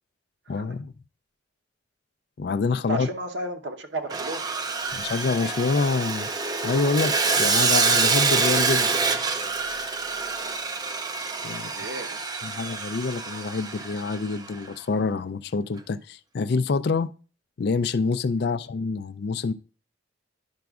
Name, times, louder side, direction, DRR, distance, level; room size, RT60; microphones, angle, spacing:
voice 1, 0.5-0.9 2.4-3.1 4.9-6.3 6.6-8.9 11.4-11.7 12.4-17.1 17.6-19.5, left 4 dB, 55° left, 0.4 m, -26 dB
voice 2, 2.9-4.5 4.8-5.0 11.6-12.6 18.4-18.5, right 1 dB, 65° right, 0.9 m, -34 dB
Sawing, 4.1-14.4, right 4 dB, 20° right, 0.4 m, -26 dB
10.5 x 5.9 x 2.4 m
head